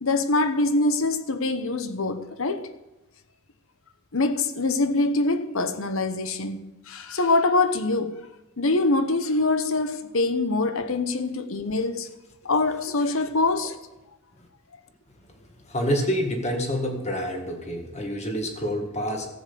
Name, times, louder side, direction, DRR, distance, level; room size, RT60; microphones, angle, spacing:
voice 1, 0.0-2.7 4.1-8.3 8.6-12.1 12.4-13.8, left 2 dB, 65° left, 1.0 m, -24 dB
voice 2, 15.7-19.3, equal, 30° left, 1.9 m, -27 dB
13.5 x 7.7 x 6.9 m
head